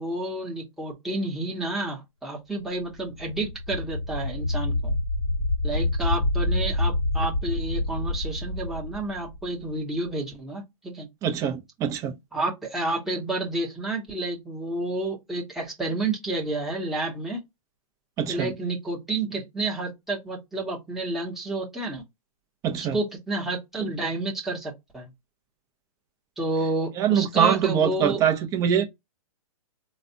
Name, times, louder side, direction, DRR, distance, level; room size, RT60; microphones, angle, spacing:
voice 1, 0.0-4.9 5.6-11.1 12.3-17.4 18.3-22.0 22.7-25.1 26.4-28.2 28.8-28.9, right 2 dB, ahead, 0.9 m, -30 dB
sound 1, 3.0-9.8, left 1 dB, 30° left, 0.9 m, -27 dB
voice 2, 11.2-12.1 18.2-18.5 22.6-23.0 27.0-28.8, right 8 dB, 15° right, 0.6 m, -23 dB
4.0 x 2.2 x 2.7 m
hypercardioid pair, 150°, 18 cm